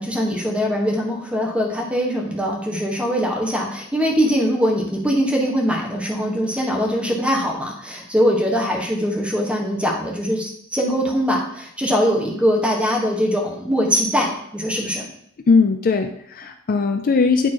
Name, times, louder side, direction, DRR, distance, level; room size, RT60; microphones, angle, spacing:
voice 1, 0.0-15.1, equal, 5° right, -1 dB, 1.2 m, -22 dB
voice 2, 15.5-17.5, left 4 dB, 45° left, 6 dB, 0.4 m, -18 dB
8.9 x 3.1 x 4.3 m, 0.69 s
head